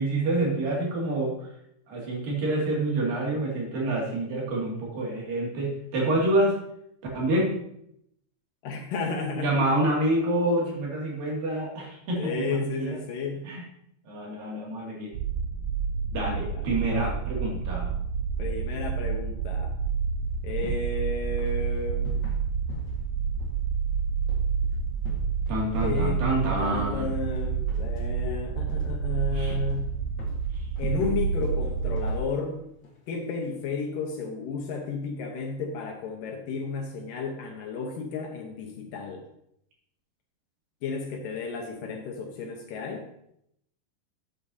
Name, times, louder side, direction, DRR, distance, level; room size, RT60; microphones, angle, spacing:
voice 1, 0.0-1.5 1.9-6.6 7.1-7.5 9.3-13.0 13.4-13.7 14.1-15.1 16.1-17.9 25.5-27.1 29.3-29.6 30.5-30.7, right 1 dB, 65° right, -3 dB, 4.0 m, -27 dB
voice 2, 8.6-9.6 12.2-13.5 16.5-16.6 16.9-17.2 18.4-19.8 20.4-22.2 25.7-26.2 26.6-29.9 30.8-32.6 33.1-39.3 40.8-43.1, left 4 dB, 70° left, 2 dB, 2.4 m, -33 dB
sound 1, 15.1-32.2, right 6 dB, 85° right, 1.7 m, -29 dB
sound 2, 20.2-33.7, left 2 dB, 45° left, 1.5 m, -47 dB
11.5 x 8.3 x 2.8 m, 0.76 s
omnidirectional pair, 4.4 m